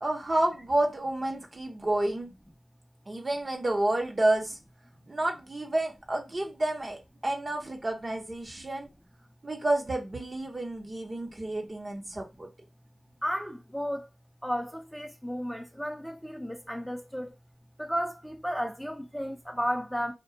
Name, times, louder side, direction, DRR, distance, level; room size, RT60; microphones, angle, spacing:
voice 1, 0.0-2.3 3.1-4.6 5.1-8.9 9.4-12.5, right 1 dB, 45° right, 0.8 m, -30 dB
voice 2, 13.2-14.1 14.4-17.4 17.8-20.1, equal, ahead, 0.5 m, -33 dB
2.3 x 2.2 x 2.8 m
cardioid pair, 55°, 0 cm